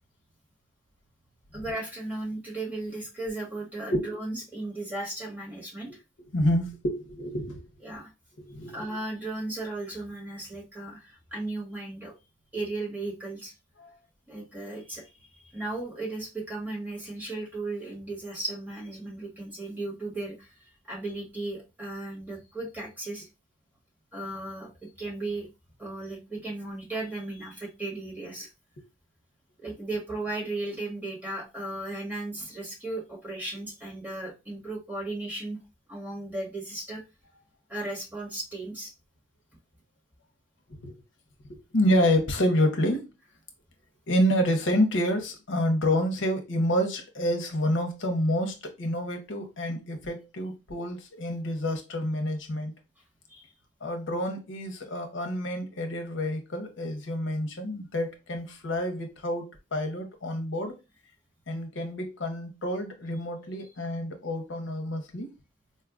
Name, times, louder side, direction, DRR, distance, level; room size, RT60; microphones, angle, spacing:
voice 1, 1.5-5.9 7.8-8.1 8.7-12.1 12.5-13.5 14.3-15.1 15.5-23.3 24.1-25.5 25.8-28.5 29.6-35.6 35.9-37.0 37.7-38.9 53.3-53.5, right 2 dB, 10° right, 1.3 m, -36 dB
voice 2, 6.3-7.6 8.4-8.9 13.8-13.9 40.8-41.0 41.7-43.1 44.1-52.7 53.8-60.8 61.5-65.3, equal, 75° left, 0.7 m, -28 dB
4.3 x 2.3 x 2.3 m
head